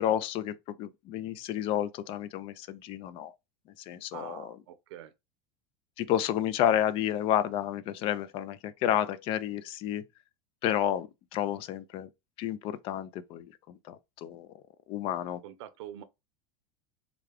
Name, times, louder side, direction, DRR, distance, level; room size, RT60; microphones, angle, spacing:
voice 1, 0.0-3.3 3.9-4.5 6.0-10.0 10.6-12.1 12.4-14.5 14.9-15.4, left 11 dB, 40° left, 0.4 m, -31 dB
voice 2, 4.1-5.1 15.3-16.0, right 11 dB, 80° right, 0.6 m, -45 dB
3.5 x 2.3 x 3.3 m
supercardioid pair, 145°, 14 cm